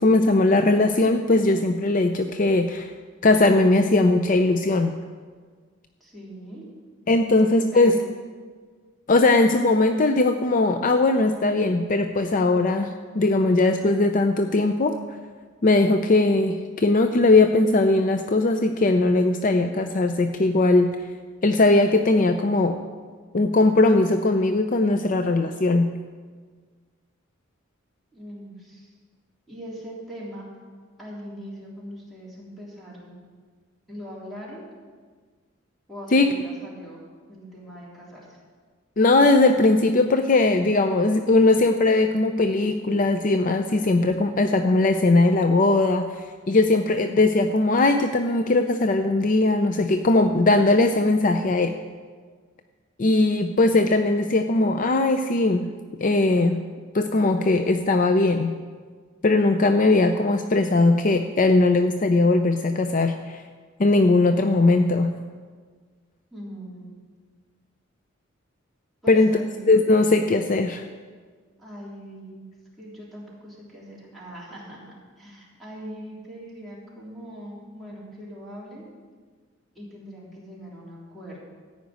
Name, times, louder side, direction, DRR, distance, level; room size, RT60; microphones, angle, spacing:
voice 1, 0.0-2.9 3.2-5.0 7.1-8.0 9.1-15.0 15.6-20.9 21.4-22.8 23.3-25.9 36.1-36.3 39.0-51.8 53.0-55.7 56.0-56.6 56.9-58.5 59.2-63.4 63.8-65.2 69.1-69.4 69.7-70.8, left 2 dB, 40° left, 7 dB, 0.5 m, -19 dB
voice 2, 6.0-6.6 7.3-8.0 28.1-28.9 29.5-30.5 31.0-33.1 33.9-34.6 35.9-37.0 37.3-38.3 66.3-66.9 69.0-69.7 71.6-72.4 72.8-78.8 79.8-81.4, equal, ahead, -7 dB, 3.5 m, -41 dB
14.5 x 5.1 x 9.3 m, 1.5 s
head